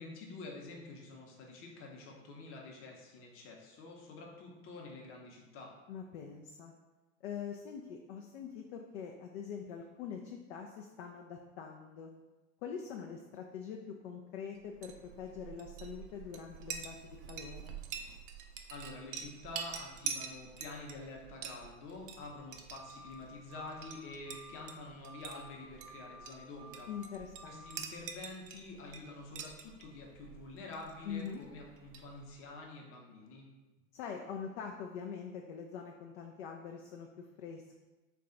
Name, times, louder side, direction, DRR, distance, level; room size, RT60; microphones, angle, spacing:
voice 1, 0.0-5.7 18.7-26.9 27.5-33.5, left 3 dB, 35° left, 0 dB, 0.8 m, -48 dB
voice 2, 5.9-6.7 7.2-12.1 12.6-17.8 26.9-27.7 31.0-31.4 33.9-37.8, left 7 dB, 55° left, 2 dB, 0.5 m, -44 dB
Chink clink, 14.6-32.5, right 7 dB, 45° right, 0.4 m, -47 dB
sound 1, 22.7-23.2 23.5-24.0 24.3-24.7 25.0-25.5 25.8-26.3 26.6-27.1 27.3-27.8, right 1 dB, 75° right, 0.7 m, -53 dB
3.5 x 2.4 x 3.8 m, 1.1 s
figure-of-eight pair, 90°, 40 cm